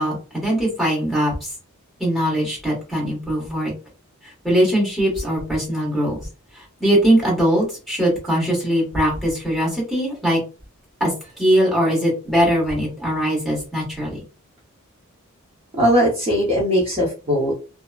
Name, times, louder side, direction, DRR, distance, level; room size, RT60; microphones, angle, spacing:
voice 1, 0.0-1.5 2.0-3.7 4.2-6.3 6.5-10.4 11.0-14.2, equal, ahead, -5 dB, 1.3 m, -21 dB
voice 2, 15.8-17.5, equal, 25° right, -6 dB, 0.8 m, -19 dB
2.8 x 2.2 x 2.3 m, 0.33 s
head